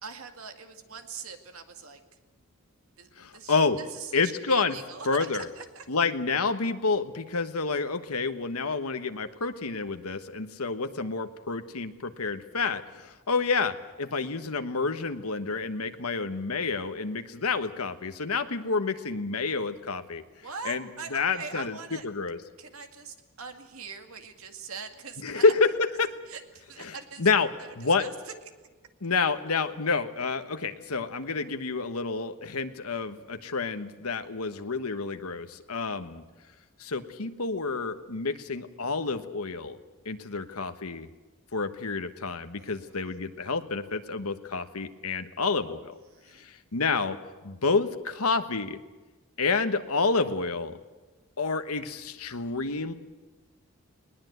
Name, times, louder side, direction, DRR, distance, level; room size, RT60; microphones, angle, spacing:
voice 1, 0.0-2.0 3.0-5.9 20.4-22.1 22.6-25.4 26.3-27.3 27.6-27.7 28.0-28.1 42.6-43.0 46.1-46.5, right 5 dB, 70° right, 6 dB, 2.1 m, -42 dB
voice 2, 3.2-3.8 4.1-4.8 5.0-5.5 5.9-20.2 20.6-20.8 21.1-22.4 25.2-25.7 26.0-26.1 26.8-27.5 27.7-28.1 29.0-36.2 36.8-39.8 40.0-41.1 41.5-45.9 46.3-47.2 47.4-48.8 49.4-50.8 51.4-52.9, left 4 dB, 85° left, 8 dB, 1.3 m, -29 dB
20.5 x 19.5 x 8.0 m, 1.2 s
head